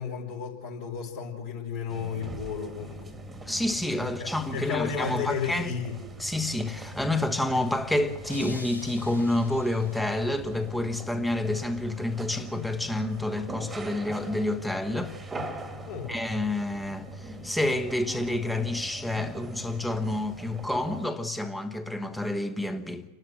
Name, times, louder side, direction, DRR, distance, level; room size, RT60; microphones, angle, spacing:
voice 1, 0.0-3.2 4.2-5.9 15.9-16.1, left 7 dB, 50° left, 3.8 m, -33 dB
sound 1, 1.9-21.1, right 1 dB, 15° right, 1.8 m, -41 dB
voice 2, 3.4-5.8 6.2-15.1 16.1-23.0, left 1 dB, 5° left, 1.3 m, -29 dB
sound 2, 8.3-10.4, left 2 dB, 85° left, 1.6 m, -46 dB
29.5 x 12.0 x 8.0 m
figure-of-eight pair, 90°, 0 cm